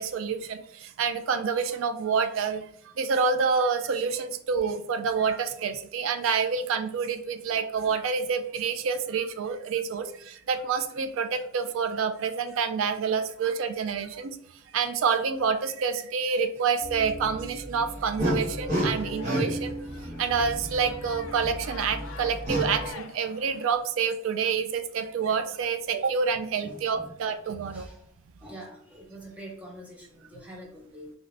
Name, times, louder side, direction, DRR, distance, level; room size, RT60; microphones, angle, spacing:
voice 1, 0.0-14.4 14.7-27.9, right 5 dB, 85° right, 9 dB, 0.3 m, -28 dB
sound 1, 16.8-22.9, equal, 35° right, 1.1 m, -32 dB
sound 2, 18.7-23.7, left 6 dB, 80° left, 0.3 m, -46 dB
voice 2, 26.6-27.1 27.6-28.0 28.4-31.1, right 1 dB, 5° right, -3 dB, 0.6 m, -45 dB
3.2 x 2.6 x 2.5 m, 0.67 s
head